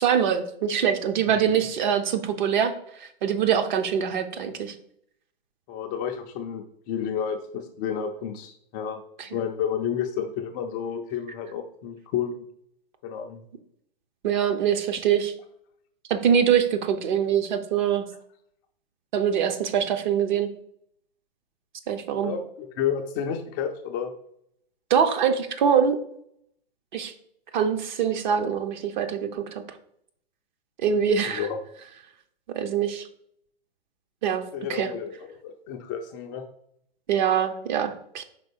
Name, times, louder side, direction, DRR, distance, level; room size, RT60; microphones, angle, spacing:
voice 1, 0.0-4.7 9.2-9.3 14.2-15.3 16.1-18.1 19.1-20.5 21.9-22.3 24.9-26.0 26.9-27.1 27.5-29.6 30.8-31.5 32.5-33.1 34.2-34.4 34.7-34.9 37.1-38.2, right 8 dB, 50° right, 7 dB, 0.9 m, -24 dB
voice 2, 5.7-9.0 9.3-12.4 13.0-13.4 22.2-24.1 31.3-31.6 34.5-36.4, left 8 dB, 20° left, 3 dB, 0.3 m, -31 dB
5.1 x 3.9 x 5.0 m, 0.71 s
hypercardioid pair, 125°, 30 cm